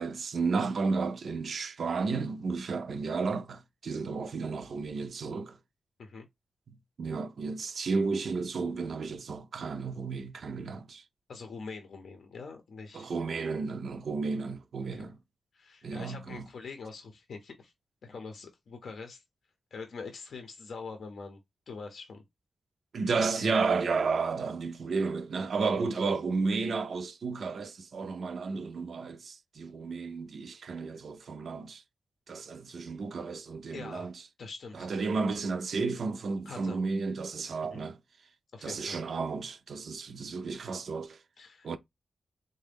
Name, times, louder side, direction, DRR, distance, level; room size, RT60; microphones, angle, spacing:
voice 1, 0.0-5.6 6.7-11.0 12.9-15.2 15.8-16.5 22.9-31.8 32.3-34.1 34.8-38.0 38.6-41.2 41.6-41.8, right 4 dB, 60° right, 0.3 m, -32 dB
voice 2, 11.3-13.1 14.9-15.1 15.5-17.7 18.0-19.2 19.7-21.4 21.7-22.2 23.3-23.6 25.7-25.8 33.7-34.1 34.4-34.9 36.5-36.8 37.7-37.8 38.5-39.0 41.4-41.7, left 4 dB, 70° left, 0.6 m, -44 dB
3.8 x 2.1 x 3.3 m
wide cardioid pair, 145°, 0 cm